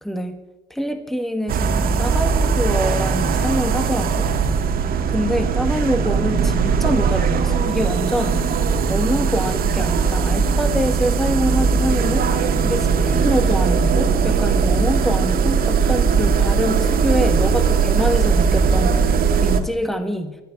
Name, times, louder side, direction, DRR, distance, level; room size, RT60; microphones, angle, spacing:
voice 1, 0.0-0.4 0.7-4.3 4.7-8.5 8.9-12.3 12.6-20.4, equal, ahead, 7 dB, 1.6 m, -25 dB
sound 1, 1.5-19.6, right 5 dB, 60° right, 1.8 m, -19 dB
19.0 x 12.5 x 5.9 m, 1.0 s
cardioid pair, 110°, 17 cm